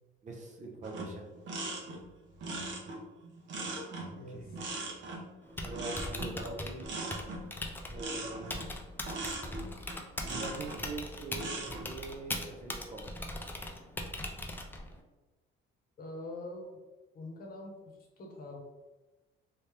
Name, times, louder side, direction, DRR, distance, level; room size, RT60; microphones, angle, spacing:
voice 1, 0.2-1.4 4.1-4.6 5.6-6.9 7.9-8.7 10.2-13.2, right 3 dB, 35° right, 1 dB, 0.6 m, -43 dB
sound 1, 0.8-10.8 11.3-11.8, right 2 dB, 60° right, 0.9 m, -40 dB
voice 2, 4.1-4.5 16.0-16.8 17.1-17.7 18.2-18.6, left 2 dB, 45° left, 0 dB, 0.9 m, -43 dB
Typing, 5.4-15.0, left 1 dB, 10° left, 0.3 m, -41 dB
3.1 x 2.8 x 3.2 m, 1.1 s
cardioid pair, 140°, 21 cm